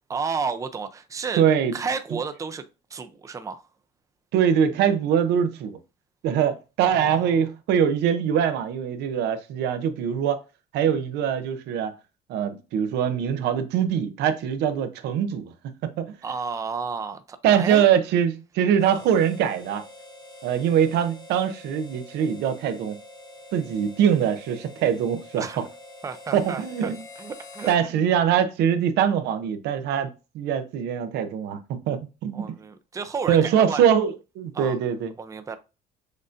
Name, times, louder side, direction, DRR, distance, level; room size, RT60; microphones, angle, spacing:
voice 1, 0.1-1.4 1.7-2.6 2.9-3.6 6.9-7.3 16.2-17.9 25.4-25.6 26.0-26.9 27.2-28.0 32.3-33.8 34.5-34.8 35.2-35.6, right 5 dB, 20° right, 0.5 m, -32 dB
voice 2, 1.4-1.7 4.3-5.8 6.2-10.4 10.7-11.9 12.3-15.5 15.8-16.2 17.4-19.8 20.4-23.0 23.5-25.5 26.3-26.9 27.7-30.1 30.3-32.4 33.3-35.1, right 8 dB, 80° right, 0.6 m, -23 dB
Harmonica, 18.7-27.8, left 2 dB, 25° left, 1.1 m, -46 dB
6.4 x 2.6 x 2.5 m
cardioid pair, 110°, 17 cm